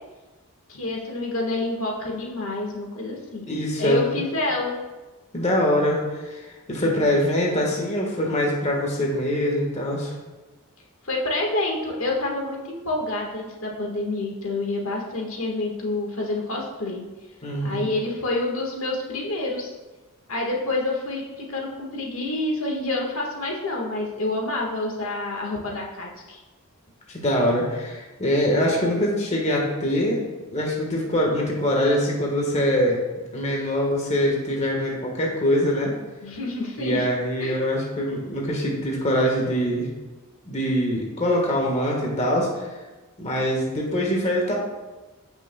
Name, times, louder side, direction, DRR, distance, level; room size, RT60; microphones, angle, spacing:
voice 1, 0.7-3.4 3.8-4.8 11.0-17.0 17.6-19.7 20.3-26.4 36.2-37.1 37.4-37.6, left 2 dB, 65° left, -1 dB, 1.5 m, -28 dB
voice 2, 3.5-4.0 5.3-10.1 17.4-17.9 27.1-30.2 30.5-33.0 33.3-35.9 36.8-39.9 40.5-42.8 43.2-44.5, equal, 30° left, -1 dB, 1.4 m, -23 dB
14.5 x 6.2 x 2.3 m, 1.2 s
head